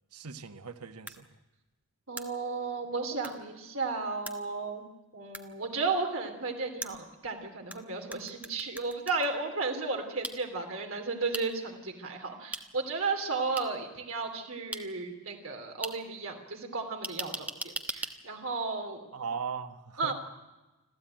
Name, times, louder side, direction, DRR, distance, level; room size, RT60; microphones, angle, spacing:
voice 1, 0.1-1.3 19.1-20.1, right 6 dB, 90° right, 9 dB, 1.3 m, -38 dB
sound 1, 1.1-1.2 2.2-2.3 3.2-3.3 4.3-4.4 5.3-5.4 6.8-7.8 8.1-9.3 10.2-10.3 11.3-11.4 12.5-12.6 13.6-13.7 14.7-14.8 15.8-15.9 17.0-18.1, right 2 dB, 5° right, 1.1 m, -37 dB
voice 2, 2.1-4.8 5.1-19.0 20.0-20.1, right 4 dB, 65° right, 3 dB, 3.0 m, -34 dB
26.0 x 14.5 x 9.0 m, 1.1 s
head